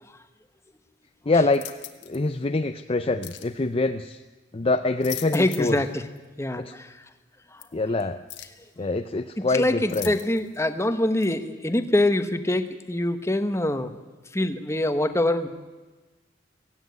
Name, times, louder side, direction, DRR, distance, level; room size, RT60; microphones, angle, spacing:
voice 1, 1.3-1.7 2.1-4.2 4.5-5.8 6.6-6.7 7.7-8.2 8.8-10.2, left 3 dB, 30° left, 8 dB, 0.6 m, -25 dB
sound 1, 1.5-2.2 3.2-3.5 4.8-5.8 6.2-6.3 7.6-7.7 8.3-8.6 9.9-10.6 11.2-11.4, left 14 dB, 85° left, 1.5 m, -40 dB
voice 2, 5.3-6.0 6.4-6.9 9.4-13.9 14.3-15.5, left 1 dB, 15° left, 9 dB, 1.1 m, -24 dB
17.0 x 16.5 x 9.5 m, 1.2 s
head